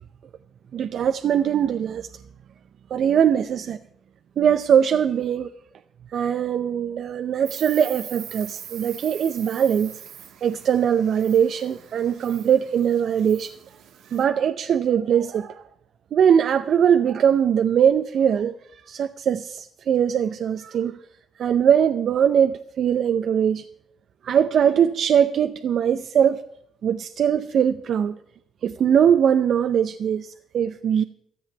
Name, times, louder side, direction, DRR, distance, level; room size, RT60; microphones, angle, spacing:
voice 1, 0.7-2.1 2.9-3.8 4.4-5.5 6.1-9.9 10.4-13.5 14.1-15.6 16.1-21.0 21.4-23.6 24.2-26.4 26.8-28.2 28.6-31.0, right 8 dB, 65° right, 0.5 m, -21 dB
Insect, 7.4-14.2, right 9 dB, 85° right, 1.5 m, -42 dB
14.0 x 7.9 x 8.9 m
cardioid pair, 90°, 0 cm